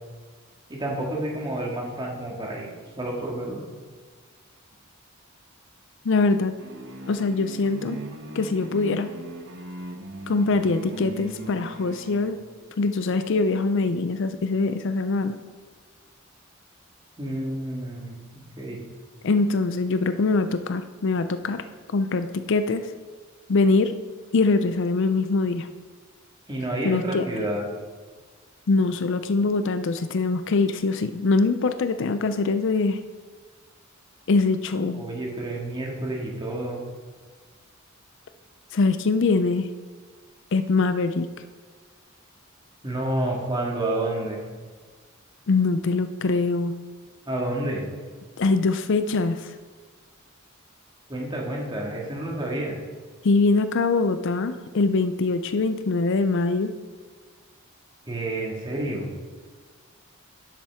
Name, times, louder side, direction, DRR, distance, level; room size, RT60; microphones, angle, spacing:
voice 1, 0.7-2.7 3.0-3.6 17.2-18.8 26.5-27.7 34.9-36.8 42.8-44.4 47.3-47.8 51.1-52.8 58.1-59.1, right 1 dB, 20° right, -2 dB, 1.9 m, -29 dB
voice 2, 6.0-6.5 7.1-8.0 8.3-9.1 10.3-12.4 12.8-15.4 19.2-22.9 23.5-24.0 24.3-25.7 26.8-27.3 28.7-33.0 34.3-35.0 38.7-39.7 40.5-41.3 45.5-46.7 48.4-49.5 53.2-56.7, left 3 dB, 60° left, 11 dB, 0.5 m, -23 dB
sound 1, 6.6-12.4, right 2 dB, 60° right, 1.1 m, -38 dB
11.0 x 7.4 x 3.6 m, 1.5 s
head